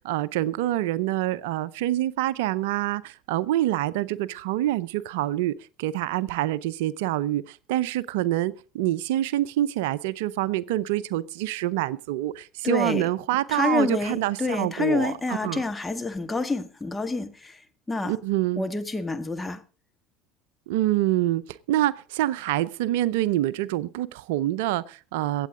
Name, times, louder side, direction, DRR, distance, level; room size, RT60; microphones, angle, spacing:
voice 1, 0.0-15.6 18.0-18.6 20.7-25.5, right 14 dB, 75° right, 0.5 m, -26 dB
voice 2, 12.6-13.1 13.5-17.6 17.9-18.2 18.6-19.6, left 3 dB, 15° left, 1.8 m, -28 dB
23.5 x 8.4 x 3.7 m
hypercardioid pair, 85°, 0 cm